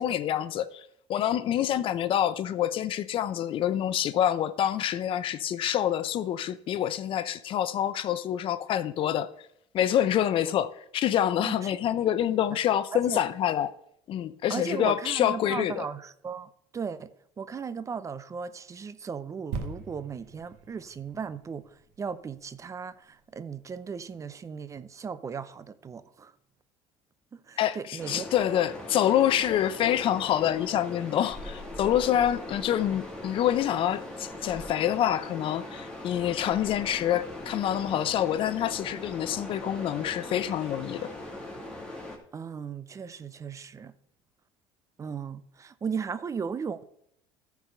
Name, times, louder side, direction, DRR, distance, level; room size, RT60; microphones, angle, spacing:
voice 1, 0.0-9.3 9.7-13.7 14.1-15.8 27.6-41.1, left 11 dB, 50° left, 0.6 m, -27 dB
voice 2, 14.5-17.1 17.4-26.3 27.5-28.3 42.3-43.9 45.0-46.8, right 6 dB, 30° right, 0.6 m, -36 dB
sound 1, 19.5-23.1 23.7-23.8, right 4 dB, 80° right, 1.6 m, -41 dB
sound 2, 28.0-42.2, left 1 dB, 5° left, 2.7 m, -40 dB
13.5 x 4.8 x 5.6 m
supercardioid pair, 95°, 11 cm